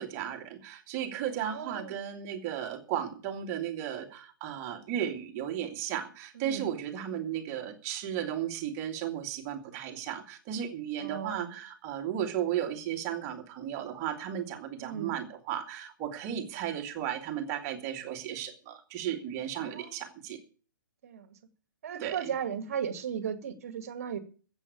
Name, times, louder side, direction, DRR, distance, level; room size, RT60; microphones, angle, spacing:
voice 1, 0.0-20.4 22.0-22.3, right 10 dB, 25° right, 2.4 m, -35 dB
voice 2, 1.5-2.0 6.4-6.7 11.0-11.5 14.8-15.1 19.6-19.9 21.0-21.3 21.8-24.2, right 8 dB, 45° right, 2.1 m, -36 dB
14.5 x 8.1 x 8.4 m
figure-of-eight pair, 125°, 11 cm